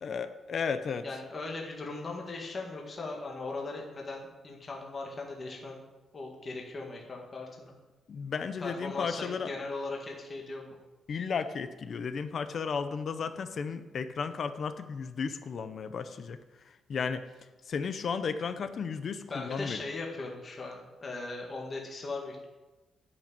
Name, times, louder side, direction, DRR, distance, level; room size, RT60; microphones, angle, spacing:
voice 1, 0.0-1.1 8.1-9.5 11.1-16.4 16.7-17.3 17.7-19.8, left 5 dB, 45° left, 11 dB, 0.6 m, -34 dB
voice 2, 1.0-5.8 6.1-7.7 8.6-10.8 19.3-22.5, left 3 dB, 30° left, 0 dB, 1.8 m, -39 dB
10.5 x 5.9 x 8.8 m, 1.1 s
wide cardioid pair, 165°, 0 cm